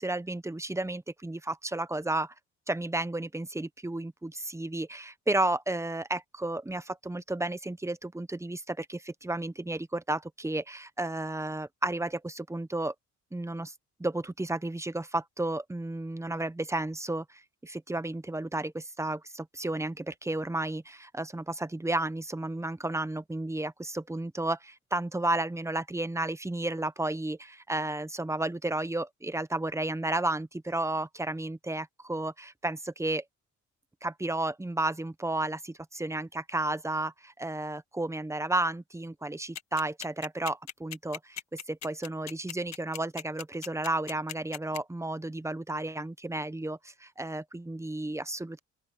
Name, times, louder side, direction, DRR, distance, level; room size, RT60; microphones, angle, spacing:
voice 1, 0.0-2.3 2.7-12.9 13.3-13.7 14.0-33.2 34.0-41.4 41.7-48.6, right 2 dB, 10° right, 0.9 m, -32 dB
sound 1, 39.5-44.8, left 10 dB, 60° left, 1.7 m, -38 dB
open air
cardioid pair, 90°, 30 cm